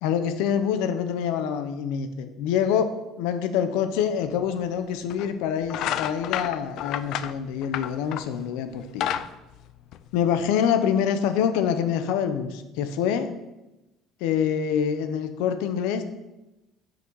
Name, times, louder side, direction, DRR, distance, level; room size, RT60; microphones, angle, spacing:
voice 1, 0.0-2.9 3.2-9.1 10.1-13.3 14.2-16.0, left 8 dB, 90° left, 8 dB, 0.7 m, -25 dB
sound 1, 4.3-4.4 5.1-5.3 5.7-8.4 8.8-10.4, left 11 dB, 55° left, 0.3 m, -30 dB
8.4 x 4.0 x 4.6 m, 1.0 s
cardioid pair, 170°, 0 cm